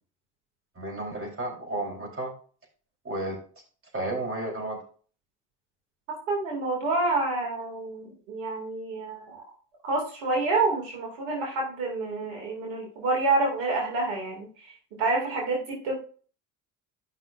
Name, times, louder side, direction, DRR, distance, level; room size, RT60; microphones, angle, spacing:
voice 1, 0.8-2.3 3.0-3.4 3.9-4.8, right 2 dB, 35° right, 0 dB, 4.0 m, -32 dB
voice 2, 6.3-9.4 9.8-14.7 15.0-16.0, right 3 dB, 85° right, 0 dB, 2.6 m, -28 dB
12.0 x 5.9 x 2.6 m, 0.41 s
hypercardioid pair, 60°, 39 cm